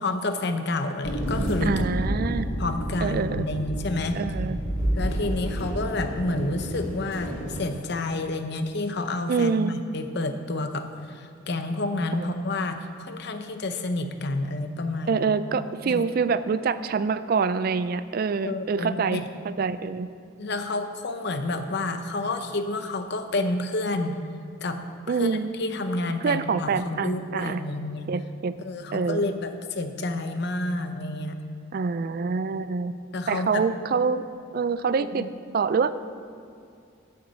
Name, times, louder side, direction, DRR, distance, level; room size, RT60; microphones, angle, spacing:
voice 1, 0.0-1.9 2.6-4.2 4.9-15.4 15.8-16.1 18.4-19.3 20.4-24.2 24.6-28.1 28.6-31.4 32.5-32.6 33.1-33.7 35.0-35.3, left 2 dB, 55° left, 7 dB, 0.7 m, -29 dB
sound 1, 1.0-7.6, equal, 80° left, 2.5 m, -29 dB
voice 2, 1.6-2.5 3.0-3.5 4.1-4.6 9.3-9.7 15.1-20.1 25.1-25.5 26.2-27.6 28.1-28.5 28.9-29.3 31.7-32.9 33.3-34.2 34.5-35.2 35.5-35.9, right 5 dB, 45° right, 14 dB, 0.3 m, -26 dB
9.1 x 7.1 x 7.3 m, 2.4 s
head